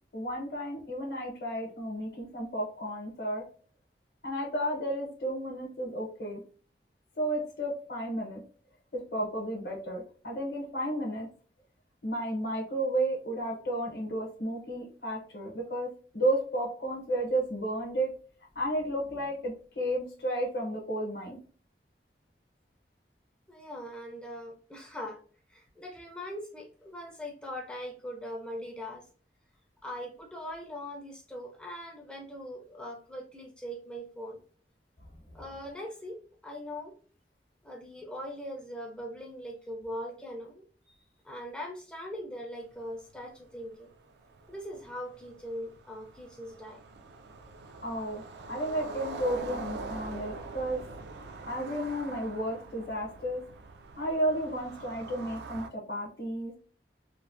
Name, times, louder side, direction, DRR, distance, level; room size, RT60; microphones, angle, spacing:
voice 1, 0.1-3.4 4.2-6.4 7.2-8.4 8.9-11.3 12.0-15.9 16.1-18.1 18.5-21.4 47.8-48.2 48.5-50.8 51.5-53.4 54.0-56.6, right 1 dB, 60° left, -1 dB, 0.8 m, -32 dB
voice 2, 23.5-25.2 25.5-29.1 29.8-34.4 35.3-36.2 36.4-36.9 37.6-40.6 41.2-43.9 44.5-46.8, equal, 5° left, 0 dB, 0.4 m, -41 dB
sound 1, 42.7-42.8 43.2-43.3 43.5-55.7, right 3 dB, 75° right, 0.4 m, -44 dB
3.1 x 2.1 x 2.5 m, 0.42 s
head